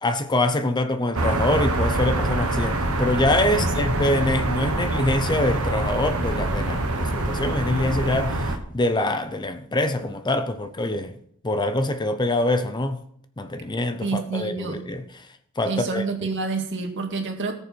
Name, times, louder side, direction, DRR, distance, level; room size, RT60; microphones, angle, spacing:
voice 1, 0.0-11.1 11.4-13.0 13.4-16.3, left 2 dB, 20° left, 0.6 m, -25 dB
sound 1, 1.1-8.6, right 2 dB, 75° right, 1.4 m, -25 dB
voice 2, 14.0-14.8 15.7-17.5, right 4 dB, 55° right, 1.9 m, -28 dB
18.0 x 6.9 x 4.5 m
head